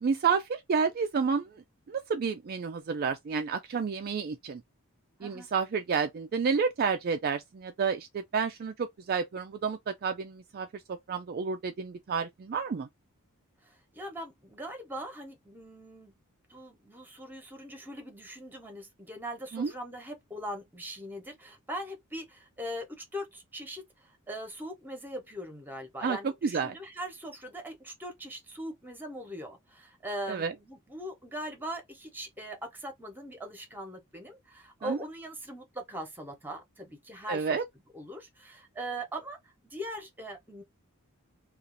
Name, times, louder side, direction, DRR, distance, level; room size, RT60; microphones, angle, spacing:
voice 1, 0.0-1.6 1.9-4.6 5.2-12.9 19.5-19.7 26.0-26.8 30.3-30.5 34.8-35.0 37.3-37.6, right 5 dB, 45° right, 0.3 m, -30 dB
voice 2, 13.6-16.1 16.5-37.6 37.9-40.6, equal, 10° right, 1.0 m, -41 dB
2.6 x 2.4 x 3.8 m
head